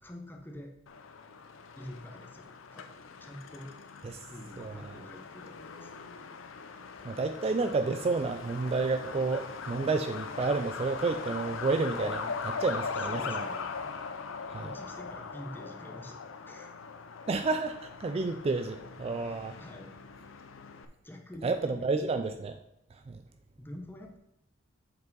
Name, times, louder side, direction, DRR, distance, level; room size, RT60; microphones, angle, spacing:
voice 1, 0.0-0.7 1.8-3.7 4.3-5.9 13.1-13.7 14.6-16.2 16.5-16.8 19.6-19.9 21.0-21.8 23.6-24.2, left 1 dB, 10° left, 2 dB, 0.8 m, -46 dB
Truck, 0.9-20.9, left 5 dB, 85° left, 0.6 m, -41 dB
voice 2, 4.6-5.0 7.0-13.5 14.5-14.7 17.3-19.6 21.4-22.6 22.9-23.2, right 3 dB, 30° right, 8 dB, 0.3 m, -31 dB
7.7 x 4.7 x 4.0 m, 0.85 s
head